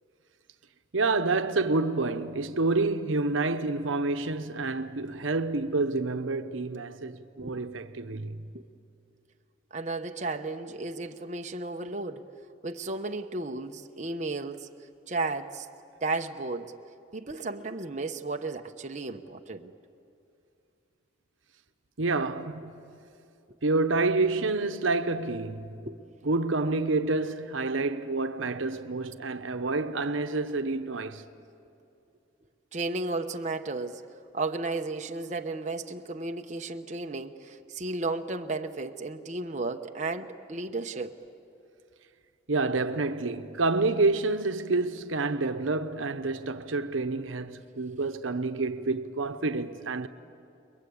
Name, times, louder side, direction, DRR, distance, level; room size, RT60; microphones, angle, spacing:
voice 1, 0.9-8.4 22.0-22.9 23.6-25.8 26.2-31.2 42.5-50.1, right 3 dB, 85° right, 1.0 m, -28 dB
voice 2, 9.7-12.2 12.6-14.7 15.1-15.7 16.0-16.7 17.1-19.7 25.8-26.0 32.7-34.0 34.3-41.1, right 3 dB, 40° right, 0.9 m, -34 dB
30.0 x 22.0 x 8.6 m
head